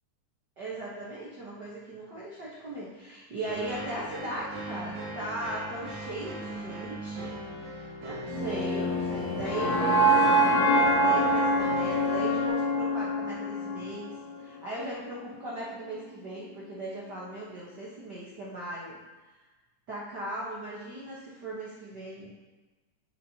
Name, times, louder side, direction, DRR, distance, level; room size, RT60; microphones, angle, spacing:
voice 1, 0.6-19.0 19.9-22.3, right 1 dB, 65° right, -7 dB, 1.0 m, -38 dB
sound 1, 3.5-12.5, right 1 dB, 85° right, 3.1 m, -40 dB
sound 2, 8.3-14.4, right 1 dB, 65° left, 3.0 m, -25 dB
9.3 x 7.4 x 2.8 m, 1.2 s
omnidirectional pair, 3.6 m